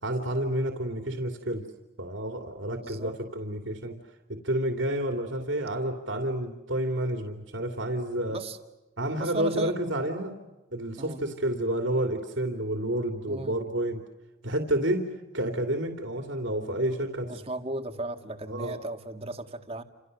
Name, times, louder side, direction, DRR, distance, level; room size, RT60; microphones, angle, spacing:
voice 1, 0.0-1.7 2.0-4.0 4.3-8.4 9.0-10.4 10.7-14.0 14.4-15.0 15.3-17.3 18.5-18.8, right 1 dB, 70° right, 4 dB, 3.0 m, -29 dB
voice 2, 2.7-3.1 8.3-8.6 9.1-9.7 11.0-11.2 13.3-13.6 17.3-19.8, right 2 dB, 30° right, 7 dB, 2.0 m, -36 dB
30.0 x 28.0 x 6.8 m, 1.0 s
head